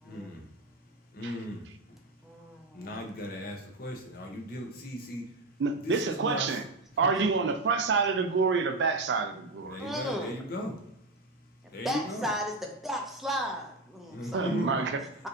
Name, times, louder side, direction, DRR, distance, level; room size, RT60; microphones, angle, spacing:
voice 1, 0.0-0.5 1.1-2.0 2.7-5.3 5.8-6.6 9.6-10.8 11.7-12.3 14.1-14.7, left 1 dB, 55° left, 2 dB, 0.7 m, -37 dB
voice 2, 2.2-3.0 9.8-10.3 11.8-14.9, equal, ahead, 1 dB, 0.5 m, -35 dB
voice 3, 5.6-6.6 7.0-9.8 14.3-15.1, right 4 dB, 75° right, 8 dB, 0.4 m, -27 dB
4.2 x 2.6 x 2.5 m, 0.81 s
head